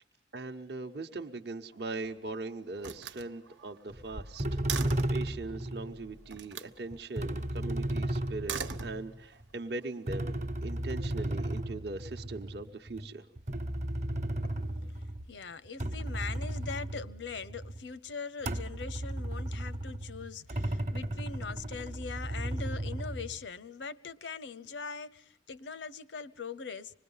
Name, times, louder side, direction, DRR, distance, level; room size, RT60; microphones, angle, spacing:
voice 1, 0.3-13.3, right 3 dB, 60° right, 0.8 m, -40 dB
Slam, 1.7-2.3 2.8-5.3 6.3-6.8 8.3-9.4, right 6 dB, 90° right, 1.1 m, -40 dB
sound 1, 3.9-4.0 4.4-6.0 6.9-9.4 10.1-15.3 15.6-17.9 18.4-23.4, right 1 dB, 40° right, 1.0 m, -35 dB
voice 2, 14.8-27.0, left 5 dB, 80° left, 0.8 m, -41 dB
26.0 x 20.5 x 5.5 m
head